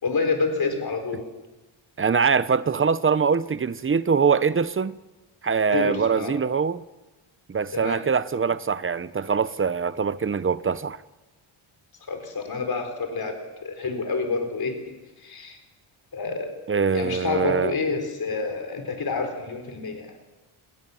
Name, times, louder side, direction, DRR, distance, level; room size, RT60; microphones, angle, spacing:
voice 1, 0.0-1.2 5.7-6.4 7.7-8.0 12.1-15.6 16.1-16.5 16.9-20.1, left 4 dB, 45° left, 4.2 m, -28 dB
voice 2, 2.0-5.0 5.4-6.8 7.5-11.0 16.7-17.7, right 6 dB, 25° right, 0.8 m, -23 dB
30.0 x 21.0 x 7.1 m
wide cardioid pair, 135°, 49 cm